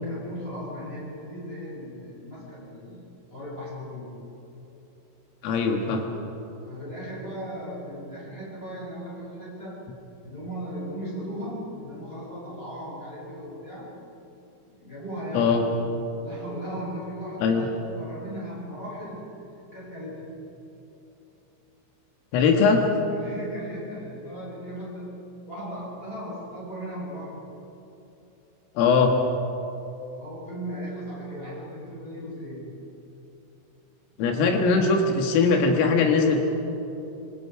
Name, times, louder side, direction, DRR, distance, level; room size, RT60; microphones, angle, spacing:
voice 1, 0.0-4.1 6.6-9.8 10.2-13.9 14.6-15.5 16.2-19.3 19.7-20.4 23.1-25.1 25.5-27.4 30.1-32.7 34.2-34.7, equal, 10° left, -5 dB, 7.2 m, -37 dB
voice 2, 5.4-6.0 15.3-15.6 17.4-17.7 22.3-22.8 28.8-29.1 34.2-36.4, left 4 dB, 85° left, 3 dB, 4.2 m, -20 dB
26.0 x 25.5 x 4.9 m, 3.0 s
omnidirectional pair, 5.8 m